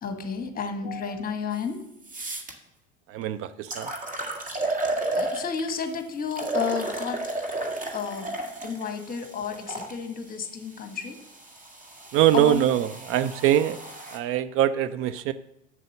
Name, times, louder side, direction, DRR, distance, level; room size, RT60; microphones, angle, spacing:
voice 1, 0.0-1.8 5.1-7.2 7.9-8.3 8.6-11.2 12.3-12.7, left 5 dB, 20° left, 6 dB, 1.7 m, -31 dB
sound 1, 1.5-1.6 2.0-2.5 3.2-3.3 3.7-5.8 6.3-9.9 10.8-14.2, right 2 dB, 20° right, 2.0 m, -33 dB
voice 2, 3.1-3.9 12.1-13.8 14.1-15.3, right 12 dB, 35° right, 12 dB, 0.5 m, -23 dB
7.8 x 7.4 x 6.5 m, 0.88 s
figure-of-eight pair, 75°, 39 cm